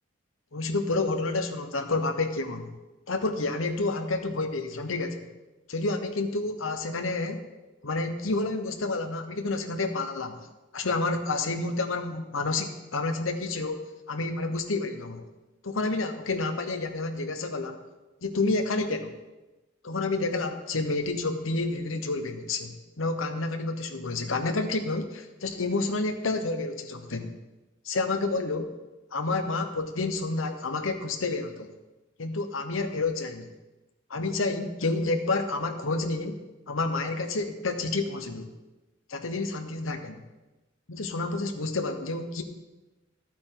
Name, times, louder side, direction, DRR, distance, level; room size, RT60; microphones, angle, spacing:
voice 1, 0.5-2.7 3.1-5.3 5.7-7.4 7.8-10.5 10.7-15.3 15.6-17.8 18.2-19.2 19.8-22.7 23.0-27.4 27.8-28.7 29.1-31.7 32.2-33.5 34.1-38.5 39.1-40.2 40.9-42.4, left 3 dB, 75° left, 6 dB, 1.0 m, -29 dB
12.0 x 8.7 x 3.9 m, 1.1 s
head